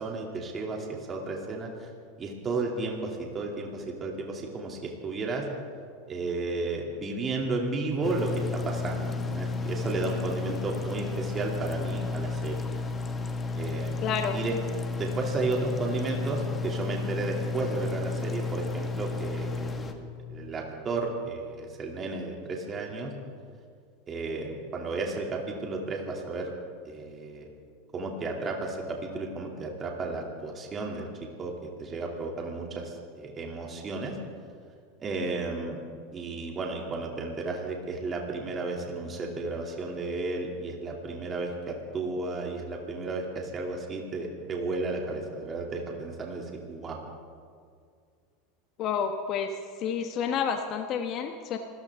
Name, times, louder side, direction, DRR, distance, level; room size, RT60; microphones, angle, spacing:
voice 1, 0.0-1.9 2.2-5.4 6.1-12.6 13.6-14.0 14.3-14.6 15.0-23.1 24.1-26.5 26.8-27.5 27.9-31.1 31.4-34.2 35.0-35.8 36.1-47.1, right 3 dB, 30° right, 0 dB, 2.7 m, -33 dB
sound 1, 8.0-19.9, left 3 dB, 20° left, 1.6 m, -32 dB
voice 2, 14.0-14.3 48.8-49.5 49.8-51.6, left 7 dB, 45° left, 5 dB, 1.1 m, -29 dB
26.5 x 15.0 x 3.6 m, 2.2 s
hypercardioid pair, 105°, 0 cm